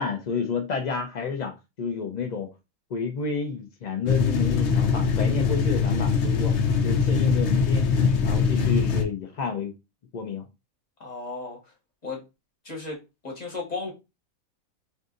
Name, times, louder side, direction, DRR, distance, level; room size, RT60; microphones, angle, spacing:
voice 1, 0.0-1.5 1.8-2.5 2.9-6.5 6.8-7.8 8.2-9.7 10.1-10.5, left 5 dB, 80° left, 0.4 m, -30 dB
sound 1, 4.1-9.0, left 5 dB, 65° left, 0.8 m, -22 dB
voice 2, 11.0-11.6 12.0-12.2 12.6-13.0 13.2-13.9, left 3 dB, 30° left, 1.2 m, -34 dB
2.6 x 2.6 x 3.6 m
omnidirectional pair, 1.5 m